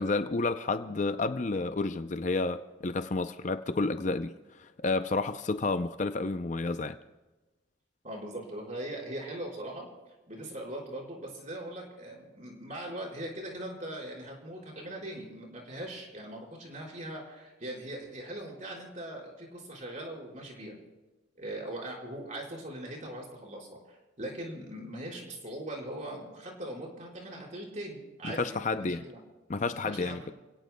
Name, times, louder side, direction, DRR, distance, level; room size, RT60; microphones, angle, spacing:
voice 1, 0.0-7.0 28.2-29.1 29.5-30.3, left 3 dB, 40° left, 0.5 m, -30 dB
voice 2, 8.0-20.7 21.4-29.2 29.8-30.3, right 1 dB, 40° right, 4.8 m, -40 dB
29.5 x 17.5 x 2.2 m
head